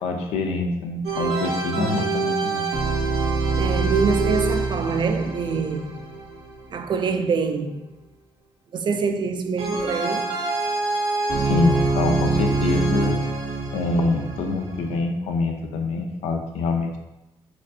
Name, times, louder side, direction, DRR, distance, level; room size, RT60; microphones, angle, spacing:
voice 1, 0.0-2.7 11.4-13.2 13.7-17.0, left 3 dB, 85° left, 0.4 m, -25 dB
sound 1, 1.0-7.1 9.6-15.0, right 3 dB, 80° right, 0.7 m, -25 dB
voice 2, 1.8-2.1 3.6-5.9 6.7-7.8 8.7-10.3, right 5 dB, 50° right, 0.4 m, -25 dB
4.1 x 2.5 x 2.7 m
cardioid pair, 70°, 10 cm